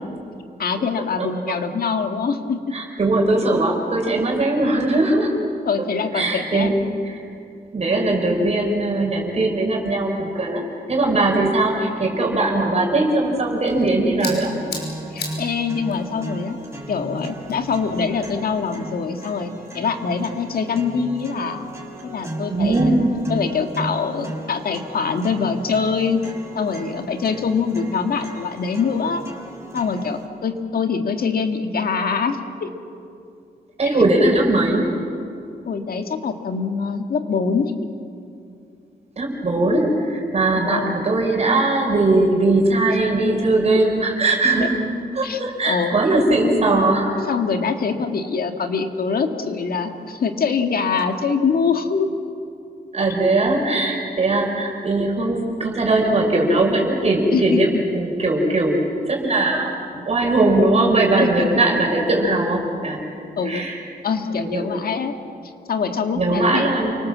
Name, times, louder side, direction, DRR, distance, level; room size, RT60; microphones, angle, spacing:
voice 1, 0.6-2.8 5.7-6.7 15.1-16.6 16.9-21.7 22.0-22.9 23.3-26.2 26.5-29.2 29.7-32.7 33.8-34.0 35.7-37.7 40.6-41.0 44.6-44.7 45.2-45.9 47.3-52.1 57.3-57.8 61.2-61.5 63.4-63.6 64.0-65.2 65.7-66.7, left 5 dB, 65° left, 6 dB, 2.1 m, -24 dB
voice 2, 2.7-5.3 6.1-6.8 7.0-7.2 7.7-14.5 22.5-23.1 33.8-34.9 39.2-44.7 45.1-47.1 52.9-59.7 60.0-63.0 63.4-63.8 64.4-64.7 66.1-67.0, right 2 dB, 40° right, 0 dB, 5.0 m, -20 dB
sound 1, 13.4-18.4, left 4 dB, 85° left, 6.0 m, -38 dB
sound 2, 14.3-30.3, right 1 dB, 15° right, 5.0 m, -36 dB
29.5 x 25.0 x 7.5 m, 2.5 s
wide cardioid pair, 140°, 16 cm